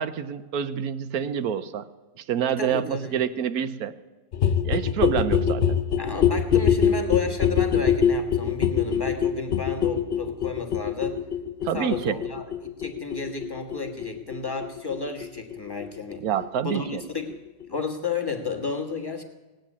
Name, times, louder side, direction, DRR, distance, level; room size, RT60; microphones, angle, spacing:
voice 1, 0.0-1.9 2.2-3.9 4.6-5.8 11.6-12.2 16.2-17.0, right 9 dB, 65° right, 14 dB, 1.0 m, -27 dB
voice 2, 2.6-3.2 6.0-11.2 11.7-16.2 16.6-17.4 17.7-19.2, left 4 dB, 15° left, 2 dB, 1.2 m, -32 dB
sound 1, 4.3-15.9 16.1-16.2 16.4-16.5 16.7-16.8 17.0-17.1 17.3-17.4 17.6-17.7, left 8 dB, 65° left, 0.5 m, -24 dB
17.5 x 9.2 x 8.5 m, 1.2 s
omnidirectional pair, 2.0 m